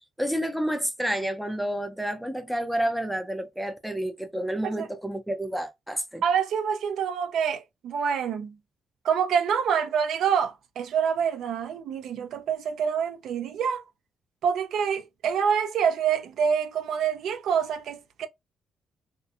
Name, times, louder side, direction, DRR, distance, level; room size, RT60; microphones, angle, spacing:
voice 1, 0.2-6.2, right 1 dB, ahead, 0.4 m, -29 dB
voice 2, 6.2-8.5 9.0-13.8 14.4-18.3, right 7 dB, 70° right, 0.5 m, -26 dB
2.4 x 2.3 x 2.7 m
cardioid pair, 150°, 0 cm